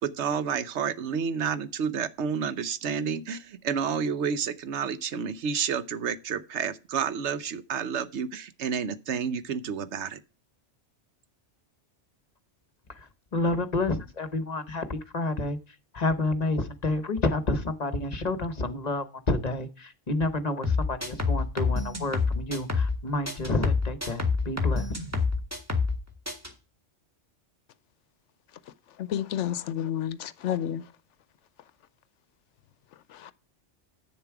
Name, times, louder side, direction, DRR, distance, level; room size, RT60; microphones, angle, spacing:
voice 1, 0.0-10.2, right 7 dB, 70° right, 1.0 m, -30 dB
voice 2, 12.9-25.0, left 2 dB, 40° left, 0.9 m, -29 dB
sound 1, 20.6-23.0 23.3-26.0 26.3-26.5, left 4 dB, 15° right, 1.7 m, -27 dB
voice 3, 29.0-30.8 33.1-33.3, left 10 dB, 80° left, 0.9 m, -30 dB
8.9 x 7.0 x 4.7 m
omnidirectional pair, 1.2 m